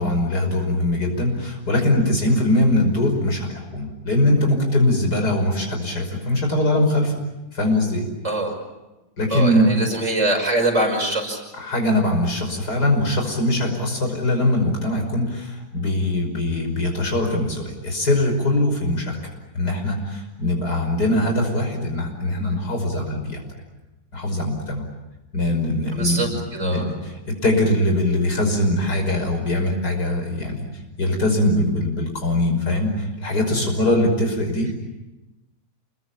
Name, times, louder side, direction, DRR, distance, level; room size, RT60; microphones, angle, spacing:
voice 1, 0.0-7.1 7.5-8.1 9.2-9.7 11.5-23.4 24.1-24.8 25.3-26.3 26.6-27.1 27.4-30.7 31.0-34.7, left 1 dB, 75° left, 3 dB, 6.2 m, -21 dB
voice 2, 9.3-11.4 25.9-26.9, right 1 dB, 45° right, 2 dB, 6.0 m, -23 dB
28.0 x 22.0 x 8.8 m, 1.0 s
omnidirectional pair, 1.7 m